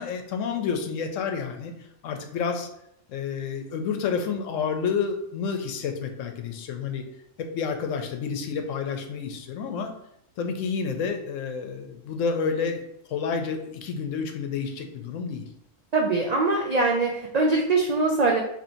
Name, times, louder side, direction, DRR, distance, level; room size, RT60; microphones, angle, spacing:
voice 1, 0.0-1.7 2.0-2.7 3.1-7.0 7.4-9.9 10.4-12.8 13.1-15.4, left 6 dB, 90° left, 5 dB, 1.0 m, -29 dB
voice 2, 15.9-18.4, right 3 dB, 75° right, -1 dB, 0.3 m, -22 dB
4.3 x 3.0 x 2.6 m, 0.76 s
omnidirectional pair, 1.3 m